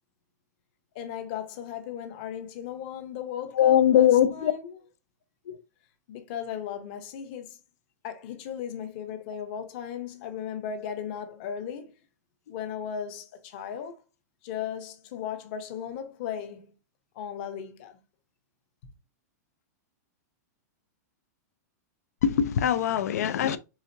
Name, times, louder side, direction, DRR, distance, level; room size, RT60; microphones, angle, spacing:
voice 1, 0.9-4.8 6.1-7.6 8.0-11.9 12.5-14.0 14.4-16.7 17.1-18.0, left 8 dB, 35° left, 0.9 m, -36 dB
voice 2, 3.5-4.5 22.2-23.6, left 10 dB, 65° left, 0.5 m, -21 dB
4.9 x 3.5 x 2.7 m
supercardioid pair, 175°, 9 cm